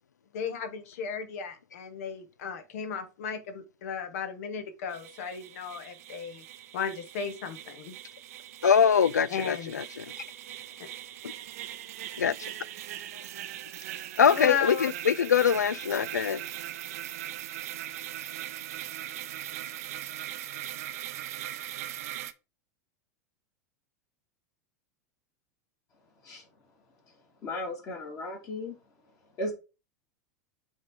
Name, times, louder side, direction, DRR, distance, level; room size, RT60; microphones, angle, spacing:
voice 1, 0.3-6.4 6.7-7.9 9.3-9.8 10.8-10.9 14.3-14.9, left 6 dB, 60° left, 1.2 m, -35 dB
sound 1, 4.9-22.3, right 13 dB, 60° right, 0.7 m, -40 dB
voice 2, 8.6-10.1 12.2-12.5 14.2-16.4, left 7 dB, 80° left, 0.4 m, -23 dB
voice 3, 27.4-28.7 29.4-29.5, left 1 dB, 35° left, 2.5 m, -35 dB
7.9 x 3.7 x 4.8 m
figure-of-eight pair, 90°, 9 cm